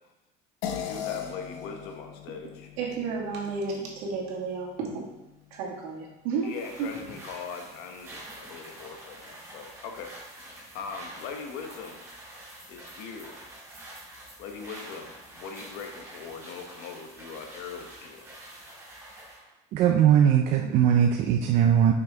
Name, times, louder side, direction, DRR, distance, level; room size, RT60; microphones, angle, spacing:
sound 1, 0.6-5.3, left 9 dB, 90° left, 0.8 m, -39 dB
voice 1, 0.7-2.7 6.4-12.2 12.7-13.4 14.4-18.3, left 5 dB, 60° left, 4 dB, 1.0 m, -41 dB
voice 2, 2.8-5.1 5.5-6.9, right 5 dB, 80° right, -2 dB, 2.0 m, -32 dB
sound 2, 6.5-19.4, right 1 dB, 15° right, 1.8 m, -46 dB
voice 3, 19.7-21.9, right 9 dB, 35° right, 3 dB, 0.4 m, -20 dB
5.9 x 5.6 x 3.8 m, 0.95 s
cardioid pair, 175°, 18 cm